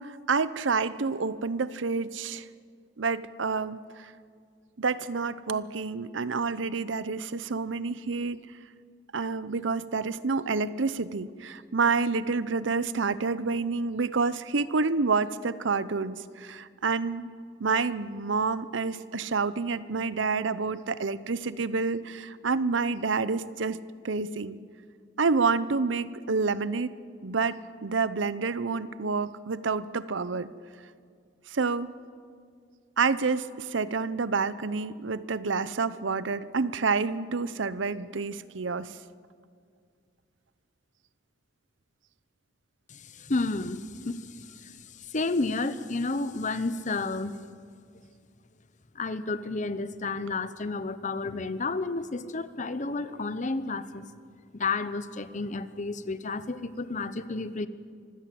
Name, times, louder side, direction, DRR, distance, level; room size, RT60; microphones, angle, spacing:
voice 1, 0.0-2.4 3.0-4.1 4.8-8.4 9.1-17.3 17.6-23.8 24.0-24.6 25.2-26.9 27.2-30.5 31.5-31.9 33.0-39.0, right 4 dB, 85° right, 16 dB, 0.8 m, -28 dB
voice 2, 42.9-47.4 48.9-54.0 54.5-57.7, left 3 dB, 40° left, 14 dB, 0.9 m, -31 dB
25.0 x 16.0 x 7.8 m, 2.1 s
head